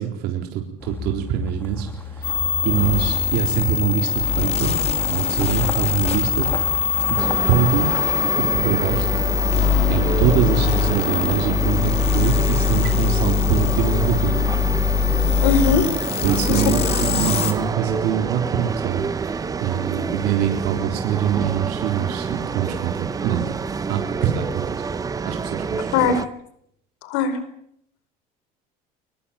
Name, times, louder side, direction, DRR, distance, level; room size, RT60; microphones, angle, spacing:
voice 1, 0.0-2.3 2.6-4.7 5.1-6.5 7.1-7.9 8.4-9.1 9.9-14.4 16.2-23.4 23.9-24.8 25.2-25.9, right 10 dB, 70° right, 3 dB, 3.9 m, -24 dB
sound 1, 0.8-8.3, left 2 dB, 10° left, 2.7 m, -33 dB
sound 2, 2.2-17.5, left 7 dB, 35° left, 3.9 m, -22 dB
sound 3, 7.2-26.3, right 5 dB, 20° right, 1.0 m, -28 dB
voice 2, 15.4-15.9 16.1-16.7 25.9-26.2 27.0-27.4, left 6 dB, 90° left, 12 dB, 4.9 m, -21 dB
24.5 x 20.5 x 9.0 m, 0.75 s
cardioid pair, 135°, 17 cm